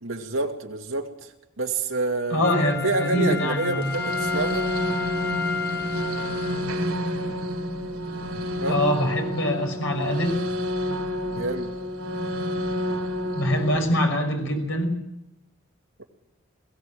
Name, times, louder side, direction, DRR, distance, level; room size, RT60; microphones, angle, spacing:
voice 1, 0.0-4.7 8.6-8.8 11.3-11.7, right 3 dB, 65° right, 3 dB, 2.4 m, -28 dB
voice 2, 2.3-3.9 8.7-10.4 13.3-15.0, equal, 65° left, 3 dB, 5.9 m, -24 dB
Wind instrument woodwind instrument, 2.4-6.7 7.2-7.3, left 6 dB, 10° left, 1.5 m, -32 dB
sound 1, 3.8-13.8, equal, 80° right, 3.7 m, -29 dB
21.5 x 16.5 x 7.7 m, 0.91 s
head